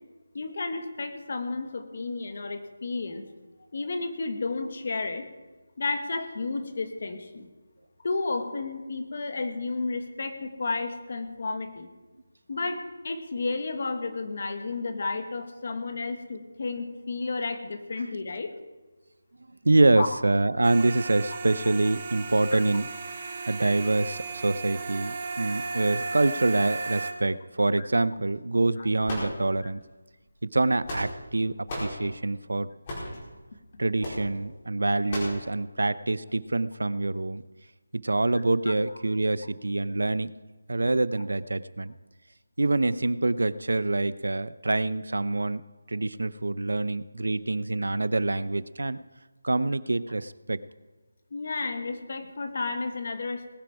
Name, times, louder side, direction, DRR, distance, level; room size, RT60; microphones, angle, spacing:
voice 1, 0.3-3.2 3.7-5.2 5.8-7.5 8.0-11.9 12.5-18.5 19.9-20.1 22.5-22.6 27.8-27.9 28.8-28.9 51.3-53.6, left 3 dB, 40° left, 7 dB, 1.6 m, -32 dB
voice 2, 19.6-29.8 30.5-32.7 33.8-37.4 38.0-40.3 40.7-41.9 42.6-45.6 45.9-49.0 49.4-50.6, right 2 dB, 85° right, 17 dB, 0.6 m, -26 dB
sound 1, 20.6-27.1, right 4 dB, 25° right, 1.4 m, -35 dB
sound 2, 29.0-29.8 30.6-31.3 31.7-32.0 32.8-33.2 34.0-34.2 35.1-35.4, left 1 dB, 20° left, 4.3 m, -35 dB
20.0 x 10.0 x 4.9 m, 1.2 s
figure-of-eight pair, 175°, 0 cm